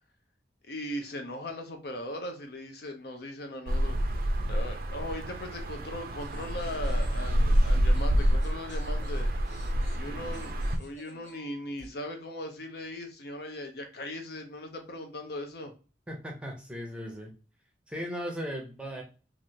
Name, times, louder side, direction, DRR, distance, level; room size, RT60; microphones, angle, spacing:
voice 1, 0.7-4.0 4.5-9.3 10.0-10.5 10.8-15.7, left 1 dB, 60° left, 5 dB, 0.6 m, -39 dB
sound 1, 3.7-10.8, equal, 50° right, 0.4 m, -27 dB
sound 2, 6.2-11.9, left 1 dB, 40° left, 1.7 m, -55 dB
voice 2, 10.1-10.4 16.1-17.3 17.9-19.0, equal, 5° right, 1 dB, 0.6 m, -37 dB
3.1 x 2.4 x 2.7 m, 0.34 s
head